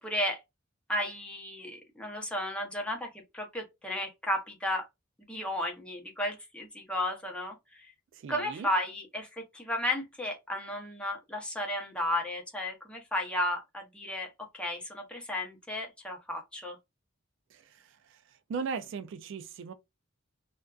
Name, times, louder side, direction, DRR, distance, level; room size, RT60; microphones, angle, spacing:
voice 1, 0.0-0.4 0.9-4.9 5.3-7.9 8.3-16.8, left 1 dB, 5° left, 0.6 m, -34 dB
voice 2, 8.1-8.7 17.5-18.2 18.5-19.7, right 5 dB, 65° right, 0.3 m, -38 dB
2.5 x 2.2 x 2.3 m
head